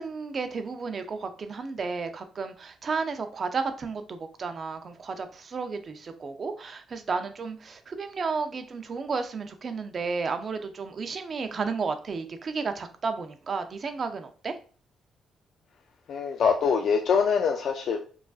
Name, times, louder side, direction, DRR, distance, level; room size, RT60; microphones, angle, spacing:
voice 1, 0.0-14.6, right 4 dB, 45° right, 0.5 m, -32 dB
voice 2, 16.1-18.0, left 6 dB, 65° left, 0.4 m, -24 dB
4.7 x 2.5 x 2.4 m
cardioid pair, 90°, 0 cm